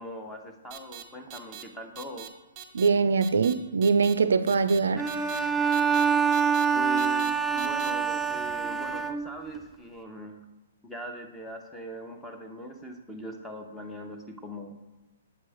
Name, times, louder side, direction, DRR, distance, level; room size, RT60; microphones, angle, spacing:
voice 1, 0.0-2.3 6.7-10.4 10.8-14.8, equal, 5° left, 0.8 m, -41 dB
sound 1, 0.7-1.0 1.3-1.6 2.0-2.3 2.6-2.9 3.2-3.5 3.8-4.1 4.5-4.8 5.1-5.4 5.7-6.0 6.3-6.7 7.0-7.3 7.6-7.9, right 10 dB, 30° right, 0.8 m, -42 dB
voice 2, 2.7-5.1, right 5 dB, 80° right, 0.4 m, -23 dB
Bowed string instrument, 5.0-9.6, right 6 dB, 10° right, 0.4 m, -26 dB
7.7 x 3.0 x 4.9 m
hypercardioid pair, 140°, 0 cm